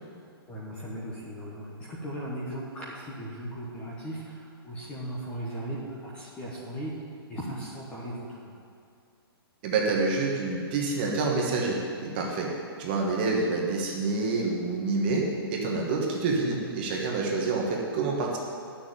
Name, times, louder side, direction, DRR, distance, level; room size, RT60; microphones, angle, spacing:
voice 1, 0.5-6.9 7.3-8.5, right 1 dB, 10° left, -6 dB, 1.1 m, -37 dB
voice 2, 9.6-12.5 12.8-18.4, right 3 dB, 25° right, -1 dB, 1.3 m, -27 dB
9.8 x 6.8 x 8.9 m, 2.4 s
hypercardioid pair, 175°, 13 cm